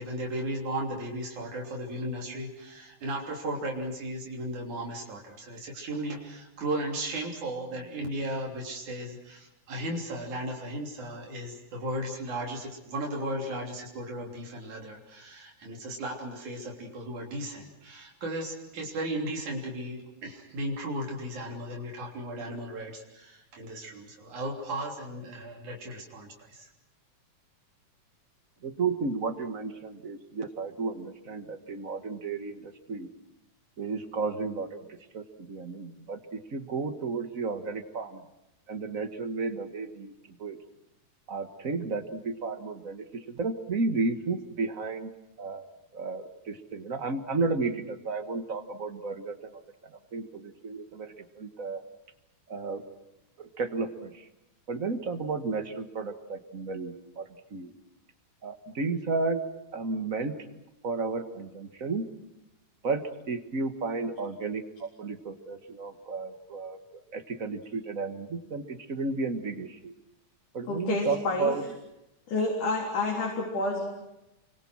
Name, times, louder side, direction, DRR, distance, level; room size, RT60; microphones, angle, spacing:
voice 1, 0.0-26.7, right 1 dB, 75° right, -1 dB, 4.8 m, -35 dB
voice 2, 28.6-33.1 33.8-34.8 35.1-38.2 38.7-40.1 40.4-40.6 41.3-45.1 45.4-45.6 45.9-49.4 50.1-51.8 52.5-52.8 53.4-54.1 54.7-57.7 58.4-59.4 59.7-60.3 60.8-62.1 62.8-66.8 67.1-69.9 70.5-71.6, right 4 dB, 35° right, 9 dB, 1.4 m, -33 dB
voice 3, 70.7-71.5 72.3-73.8, left 3 dB, 85° left, -1 dB, 5.3 m, -29 dB
29.5 x 24.5 x 6.3 m, 0.92 s
omnidirectional pair, 3.4 m